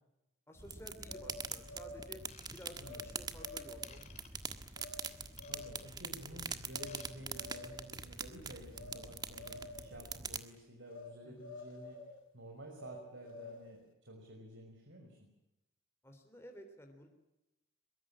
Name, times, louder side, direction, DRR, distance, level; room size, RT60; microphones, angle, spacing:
voice 1, 0.5-2.2 2.5-4.4 11.2-11.5 16.0-17.1, equal, 10° left, 4 dB, 3.4 m, -54 dB
sound 1, 0.6-10.4, right 5 dB, 20° right, 1.6 m, -44 dB
sound 2, 1.0-2.2 2.8-3.1 3.4-4.0 4.8-5.0 5.4-5.9 6.7-7.0 7.3-8.0 8.7-9.0 9.3-9.9 10.9-11.1 11.4-12.2 12.7-13.8, left 2 dB, 80° left, 6.1 m, -49 dB
Ratchet pawl / Tools, 2.2-3.2 3.8-4.3 5.1-6.0 6.7-7.1 7.4-7.6 8.1-8.2, left 6 dB, 35° left, 4.2 m, -58 dB
voice 2, 5.5-15.3, right 1 dB, 65° right, 1 dB, 5.8 m, -52 dB
23.0 x 23.0 x 8.7 m, 0.92 s
head